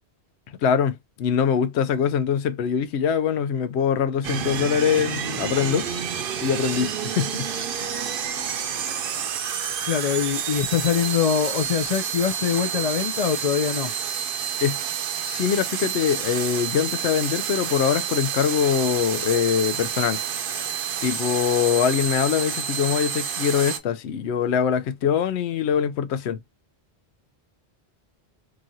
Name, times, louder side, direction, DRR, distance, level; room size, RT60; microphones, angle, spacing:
voice 1, 0.6-5.9 6.4-7.5 14.6-14.8 15.2-20.2 21.0-26.4, left 8 dB, 85° left, 0.9 m, -23 dB
sound 1, 4.2-23.8, right 8 dB, 65° right, 0.7 m, -29 dB
voice 2, 9.8-13.9, left 8 dB, 55° left, 0.4 m, -23 dB
3.0 x 2.4 x 2.6 m
omnidirectional pair, 1.1 m